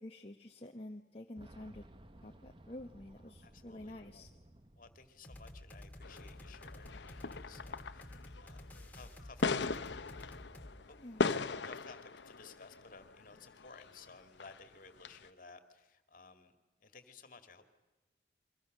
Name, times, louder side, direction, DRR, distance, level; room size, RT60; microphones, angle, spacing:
voice 1, 0.0-1.8 2.2-4.3 11.0-11.3, left 1 dB, 35° left, 2 dB, 0.9 m, -49 dB
Boom, 1.4-6.1 6.4-6.5 7.6-7.7, right 1 dB, 30° right, 1.0 m, -58 dB
voice 2, 3.4-4.3 4.7-9.7 10.9-11.0 11.3-16.5 16.8-17.7, left 4 dB, 50° left, 8 dB, 2.2 m, -56 dB
sound 1, 5.2-10.7, left 1 dB, 10° left, 2.3 m, -51 dB
sound 2, 6.0-14.1 14.4-14.6 15.0-15.3, left 4 dB, 80° left, 0.8 m, -39 dB
29.5 x 24.0 x 6.6 m, 1.1 s
head